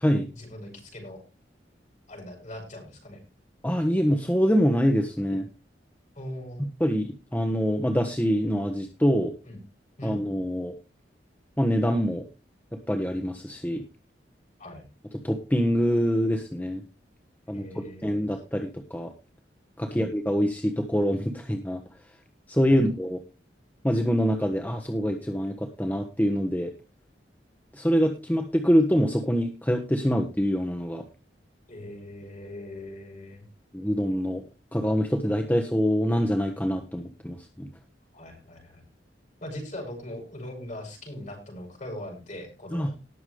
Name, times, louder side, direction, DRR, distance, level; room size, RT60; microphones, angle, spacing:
voice 1, 0.3-1.2 2.1-3.2 6.2-6.7 9.5-9.6 10.0-10.2 14.6-14.8 17.5-18.2 19.9-20.1 22.6-22.9 31.7-33.4 38.1-38.8 39.4-42.9, left 1 dB, 45° left, 1 dB, 7.4 m, -40 dB
voice 2, 3.6-5.5 6.6-9.4 10.0-10.7 11.6-12.3 12.9-13.8 15.2-16.8 17.5-19.1 19.8-21.8 22.5-23.2 23.8-26.7 27.7-31.0 33.7-34.4 34.7-37.7 42.7-42.9, equal, 10° left, 4 dB, 1.3 m, -25 dB
19.0 x 7.1 x 3.3 m, 0.29 s
head